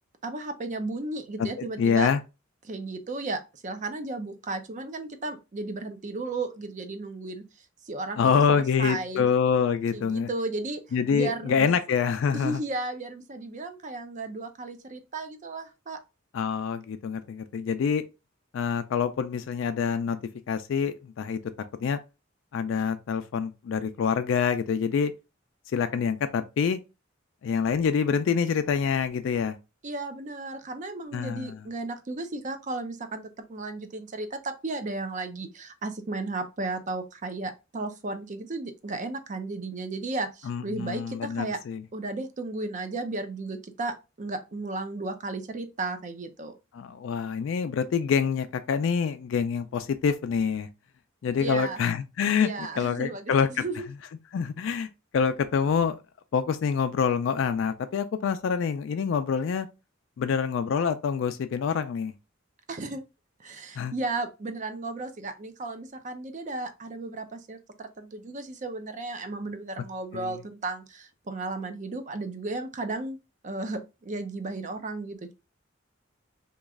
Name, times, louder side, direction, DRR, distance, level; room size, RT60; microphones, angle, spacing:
voice 1, 0.2-2.1 2.6-7.4 7.9-9.3 9.9-10.8 11.1-11.7 12.3-16.0 29.8-41.6 41.9-46.5 51.4-51.8 52.4-53.8 62.7-63.0 63.4-73.2 73.4-75.3, right 3 dB, 40° right, 0.5 m, -34 dB
voice 2, 1.4-2.2 8.2-10.3 10.9-12.6 16.3-18.0 18.5-20.2 20.5-21.4 21.8-22.0 22.5-25.1 25.7-26.8 27.4-29.6 31.1-31.6 40.4-41.8 46.7-50.7 51.2-53.6 54.3-54.9 55.1-56.0 56.3-59.7 60.2-62.1 63.8-63.9 70.1-70.4, left 6 dB, 70° left, 0.3 m, -26 dB
3.0 x 2.3 x 3.5 m
head